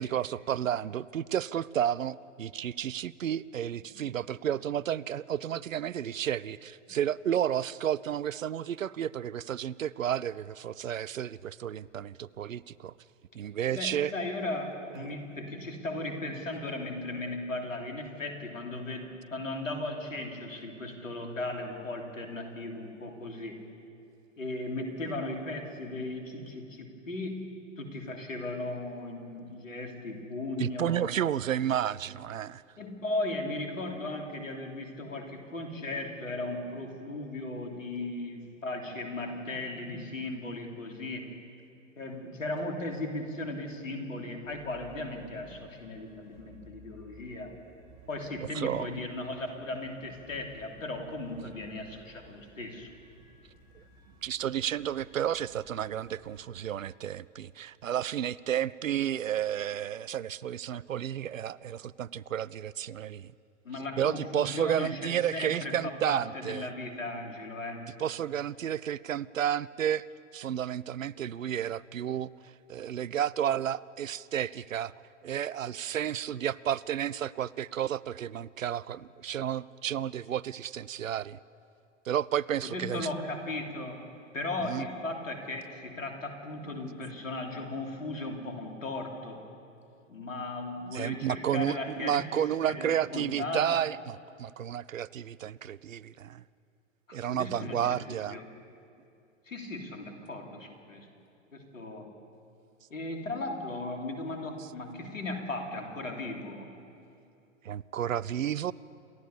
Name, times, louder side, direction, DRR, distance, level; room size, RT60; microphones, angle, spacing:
voice 1, 0.0-12.9 13.3-14.1 30.6-32.6 48.4-48.9 54.2-63.3 64.0-66.7 68.0-70.1 70.3-74.9 75.2-81.4 82.1-83.1 84.7-84.9 90.9-96.4 97.1-98.4 107.6-108.7, right 10 dB, 85° right, 21 dB, 0.6 m, -32 dB
voice 2, 13.7-23.6 24.4-27.4 27.8-31.1 32.8-41.3 42.0-47.5 48.1-52.9 63.6-67.9 82.6-84.0 84.3-89.4 90.1-92.2 92.8-93.8 97.1-98.4 99.4-101.1 101.5-102.1 102.9-106.7, left 2 dB, 85° left, 2 dB, 3.1 m, -37 dB
sound 1, 44.4-56.4, right 1 dB, 40° right, 3.3 m, -57 dB
28.0 x 13.5 x 7.1 m, 2.6 s
figure-of-eight pair, 100°, 38 cm